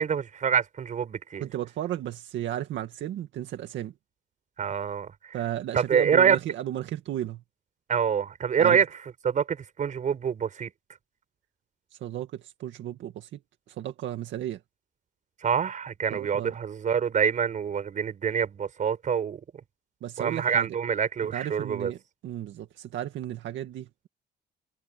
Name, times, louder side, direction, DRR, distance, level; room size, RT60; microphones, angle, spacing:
voice 1, 0.0-1.4 4.6-5.4 5.7-6.4 7.9-8.9 9.2-10.7 15.4-19.4 20.2-21.9, right 7 dB, 45° right, 5.5 m, -26 dB
voice 2, 1.4-3.9 5.3-7.4 8.6-8.8 11.9-13.4 13.7-14.6 16.1-16.6 20.0-20.8 21.2-24.1, right 12 dB, 90° right, 2.1 m, -34 dB
cardioid pair, 155°, 19 cm